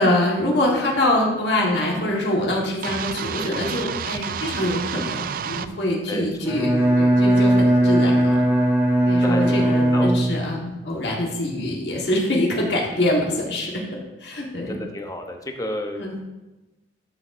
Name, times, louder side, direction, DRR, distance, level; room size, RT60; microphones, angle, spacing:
voice 1, 0.0-8.5 9.0-14.8 16.0-16.2, left 1 dB, 70° left, -2 dB, 1.5 m, -24 dB
sound 1, 2.8-5.7, right 7 dB, 55° right, 0.3 m, -29 dB
voice 2, 6.1-6.6 9.2-10.1 14.7-16.0, left 1 dB, 20° left, 3 dB, 0.8 m, -31 dB
Bowed string instrument, 6.4-10.7, right 1 dB, 15° right, 1.3 m, -18 dB
12.0 x 6.4 x 2.6 m, 1.1 s
head